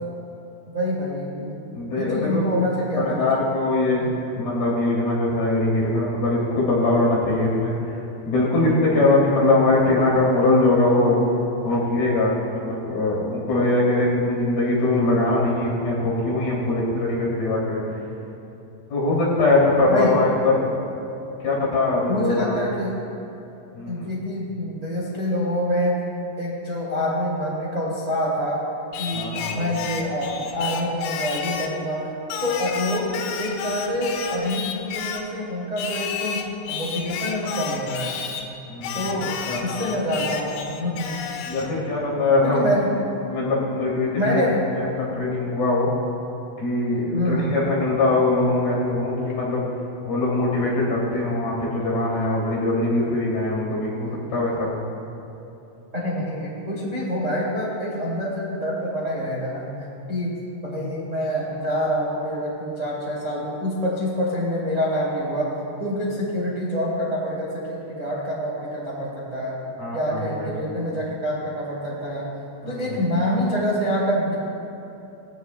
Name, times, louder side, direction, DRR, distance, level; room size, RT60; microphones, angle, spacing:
voice 1, 0.7-3.5 4.0-4.1 19.9-20.2 22.1-23.0 23.8-26.0 26.4-28.6 29.0-32.1 32.4-38.2 38.9-39.3 39.6-41.2 42.4-42.9 44.1-44.6 47.1-47.6 55.9-59.7 60.1-65.5 65.8-69.6 69.9-72.3 72.6-74.3, equal, 25° right, -5 dB, 1.6 m, -26 dB
voice 2, 1.7-2.4 3.2-4.0 4.3-11.2 11.6-18.0 18.9-20.5 21.4-22.6 23.8-24.1 29.1-29.7 38.7-39.7 41.4-42.7 43.3-44.4 44.8-45.9 46.6-49.6 50.1-54.8 69.8-70.5 72.6-72.9, left 2 dB, 50° left, -6 dB, 4.3 m, -22 dB
Singing, 28.9-31.8 32.3-35.3 35.8-38.5 38.8-41.7, left 7 dB, 85° left, 3.3 m, -32 dB
21.0 x 16.0 x 2.3 m, 3.0 s
omnidirectional pair, 5.7 m